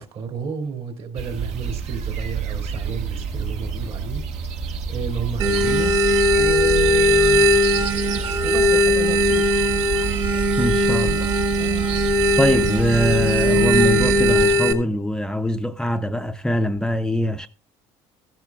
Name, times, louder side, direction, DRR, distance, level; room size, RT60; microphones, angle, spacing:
voice 1, 0.0-6.0 6.4-7.9 8.4-9.8 11.6-11.9, right 5 dB, 55° right, 2.8 m, -32 dB
sound 1, 1.1-14.5, right 6 dB, 75° right, 1.5 m, -28 dB
sound 2, 5.4-14.7, equal, 40° right, 1.6 m, -19 dB
voice 2, 10.6-11.3 12.4-17.5, left 1 dB, 5° left, 0.5 m, -23 dB
14.0 x 12.0 x 2.4 m
cardioid pair, 110°, 12 cm